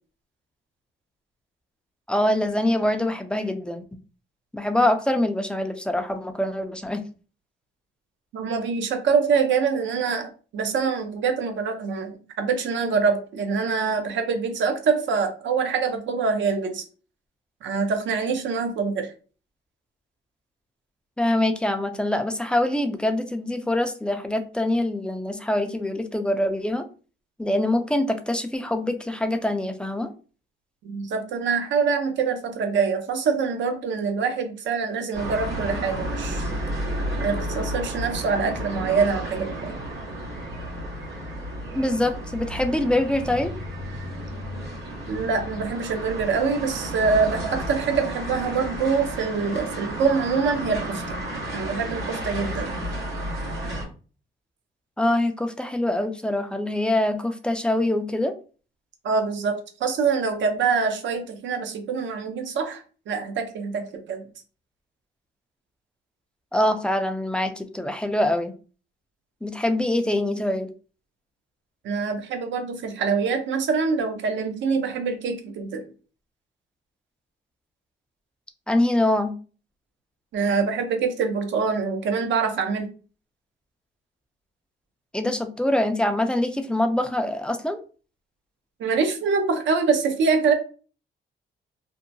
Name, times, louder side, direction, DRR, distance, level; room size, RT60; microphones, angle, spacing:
voice 1, 2.1-3.8 4.5-7.0 21.2-26.9 27.4-30.1 41.7-43.5 55.0-58.3 66.5-68.5 69.4-70.7 78.7-79.3 85.1-87.8, left 1 dB, 5° left, 7 dB, 0.3 m, -24 dB
voice 2, 8.3-16.8 17.6-19.1 30.8-36.4 37.2-39.8 45.1-51.2 51.5-52.8 59.0-64.2 71.8-75.8 80.3-82.9 88.8-90.5, right 5 dB, 70° right, 6 dB, 0.7 m, -25 dB
sound 1, 35.1-53.8, right 1 dB, 85° right, 1.2 m, -32 dB
2.7 x 2.2 x 2.6 m, 0.37 s
cardioid pair, 90°, 20 cm